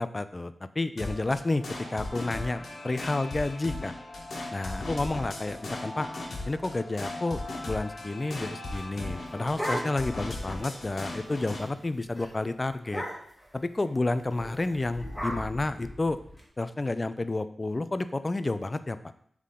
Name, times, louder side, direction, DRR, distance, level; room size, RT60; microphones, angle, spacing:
voice 1, 0.0-3.9 4.5-6.1 6.5-13.0 13.5-16.2 16.6-19.0, left 2 dB, 30° left, 12 dB, 0.4 m, -30 dB
sound 1, 1.0-11.6, left 2 dB, 80° left, 1.4 m, -38 dB
sound 2, 9.0-10.3 10.6-10.7 11.0-11.3 11.6-11.8 12.2-12.3 12.8-13.5 14.3-16.4, equal, 10° left, 1.7 m, -36 dB
7.5 x 3.7 x 3.7 m, 0.63 s
wide cardioid pair, 95°, 0 cm